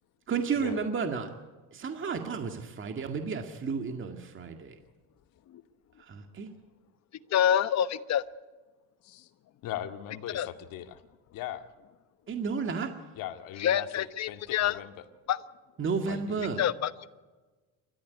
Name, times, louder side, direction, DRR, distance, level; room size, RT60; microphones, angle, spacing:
voice 1, 0.3-1.3 1.7-4.8 6.1-6.5 12.3-12.9 15.8-16.6, right 5 dB, 35° right, 5 dB, 2.1 m, -32 dB
voice 2, 7.3-8.2 10.3-10.5 13.6-14.8 15.3-15.4 16.6-17.1, left 10 dB, 50° left, 13 dB, 1.2 m, -27 dB
voice 3, 9.6-11.0 11.3-11.7 13.1-15.0 16.1-16.5, left 11 dB, 65° left, 7 dB, 2.1 m, -40 dB
29.0 x 14.0 x 9.5 m, 1.3 s
cardioid pair, 115°, 35 cm